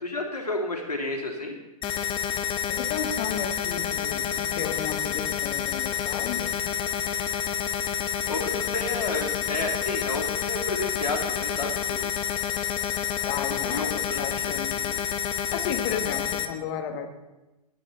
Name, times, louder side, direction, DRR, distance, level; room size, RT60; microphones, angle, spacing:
voice 1, 0.0-1.5 8.3-12.1 13.5-14.5, left 2 dB, 85° left, 1 dB, 3.4 m, -31 dB
sound 1, 1.8-16.5, left 9 dB, 25° left, 1.2 m, -29 dB
voice 2, 2.7-6.5 13.3-15.0 15.5-17.1, left 7 dB, 40° left, 5 dB, 2.2 m, -33 dB
19.5 x 9.9 x 4.3 m, 1.0 s
figure-of-eight pair, 110°, 20 cm